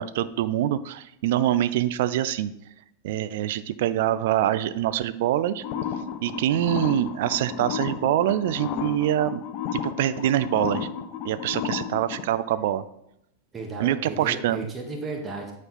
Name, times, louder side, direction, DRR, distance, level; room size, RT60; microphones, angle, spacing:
voice 1, 0.0-2.5 3.0-5.6 6.2-9.4 9.7-10.9 11.2-12.8 13.8-14.7, right 12 dB, 55° right, 14 dB, 0.3 m, -25 dB
sound 1, 5.6-12.2, left 7 dB, 40° left, 0.7 m, -32 dB
voice 2, 13.5-15.5, right 3 dB, 20° right, 1 dB, 1.6 m, -34 dB
8.8 x 4.2 x 4.1 m, 0.79 s
figure-of-eight pair, 90°, 0 cm